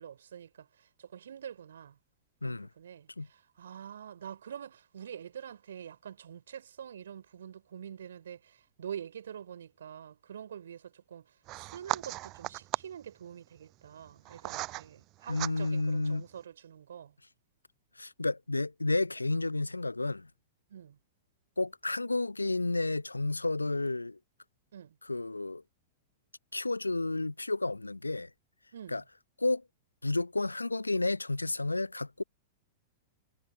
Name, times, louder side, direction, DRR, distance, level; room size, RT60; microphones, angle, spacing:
voice 1, 0.0-2.0 2.4-11.3 11.5-17.1 20.7-21.0 24.7-25.0 28.7-29.0, right 9 dB, 65° right, 4.4 m, -46 dB
sound 1, 11.5-13.0 13.8-14.9 15.2-15.9, right 19 dB, 35° right, 6.4 m, -37 dB
voice 2, 15.3-16.2 18.0-20.3 21.6-24.2 25.0-25.6 26.5-28.3 28.9-29.0 29.4-29.6 30.0-32.2, left 2 dB, 85° left, 0.9 m, -31 dB
figure-of-eight pair, 100°, 0 cm